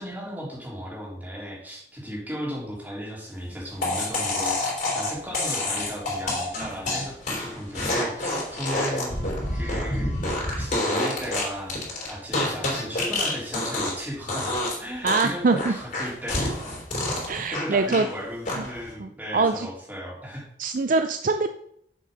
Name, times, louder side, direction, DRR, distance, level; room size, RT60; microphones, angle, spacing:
voice 1, 0.0-9.2 9.5-16.5 17.5-20.5, equal, 10° right, -4 dB, 3.5 m, -35 dB
sound 1, 3.8-14.0 14.3-14.8 15.1-18.1 18.5-18.9, left 2 dB, 45° left, 4.3 m, -28 dB
voice 2, 15.0-15.7 17.3-18.1 18.6-18.7 19.0-19.7 20.6-21.5, right 3 dB, 50° right, 8 dB, 0.5 m, -23 dB
7.5 x 6.7 x 6.6 m, 0.69 s
head